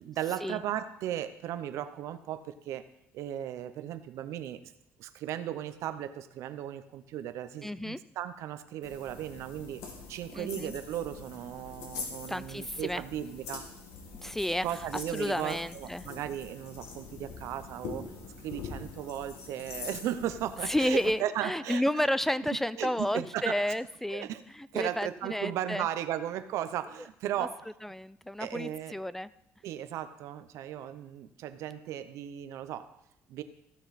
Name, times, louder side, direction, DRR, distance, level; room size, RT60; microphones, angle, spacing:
voice 1, 0.0-2.8 3.1-4.7 5.0-9.8 10.1-13.7 14.6-18.1 18.4-21.8 22.8-23.7 24.1-24.4 24.7-27.7 28.4-28.9 29.6-32.9 33.3-33.4, right 11 dB, 80° right, 11 dB, 0.7 m, -36 dB
voice 2, 7.6-8.0 10.3-10.7 12.3-13.0 14.2-14.7 15.1-16.1 20.6-24.3 24.5-25.9 27.4-27.5 27.8-29.3, left 1 dB, 5° left, 17 dB, 0.3 m, -31 dB
sound 1, 8.8-21.1, left 4 dB, 85° left, 2.0 m, -44 dB
15.5 x 6.2 x 4.1 m, 0.78 s
cardioid pair, 105°, 5 cm